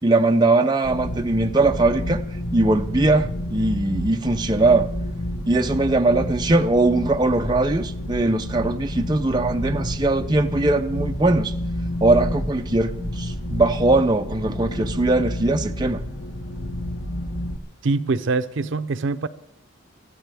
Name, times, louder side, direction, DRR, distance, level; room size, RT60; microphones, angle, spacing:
voice 1, 0.0-2.2 2.5-4.9 5.5-11.5 12.0-16.0, right 2 dB, 20° right, 0.5 m, -20 dB
sound 1, 0.8-17.6, left 1 dB, 60° left, 1.4 m, -30 dB
voice 2, 17.8-19.3, right 3 dB, 65° right, 0.6 m, -24 dB
24.0 x 14.0 x 3.4 m
head